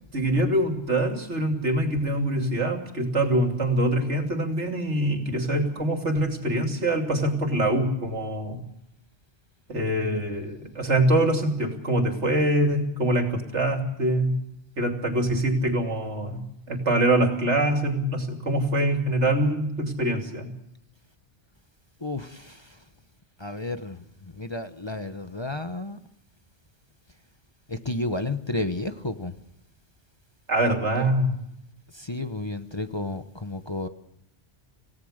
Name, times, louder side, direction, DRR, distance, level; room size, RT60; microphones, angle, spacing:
voice 1, 0.1-8.6 9.7-14.4 14.8-16.4 16.7-20.5 30.5-31.3, right 1 dB, 80° right, 4 dB, 3.3 m, -24 dB
voice 2, 22.0-22.8 23.4-26.0 27.7-29.4 30.9-31.1 31.9-33.9, left 2 dB, 25° left, 8 dB, 1.1 m, -32 dB
27.5 x 17.5 x 6.6 m, 0.80 s
omnidirectional pair, 1.2 m